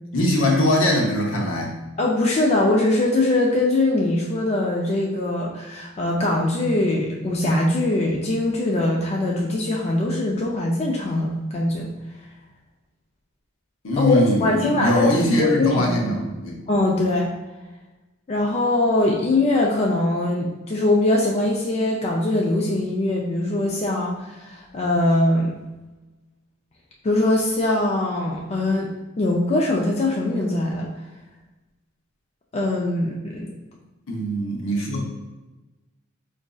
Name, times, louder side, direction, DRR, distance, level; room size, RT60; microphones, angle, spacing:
voice 1, 0.1-1.8 13.8-16.6 34.1-35.0, left 1 dB, 70° left, -1 dB, 0.8 m, -21 dB
voice 2, 2.0-11.9 14.0-15.1 15.4-15.9 16.7-17.3 18.3-25.5 27.0-30.9 32.5-33.5, left 2 dB, 30° left, -2 dB, 0.4 m, -22 dB
4.8 x 2.5 x 2.3 m, 1.1 s
head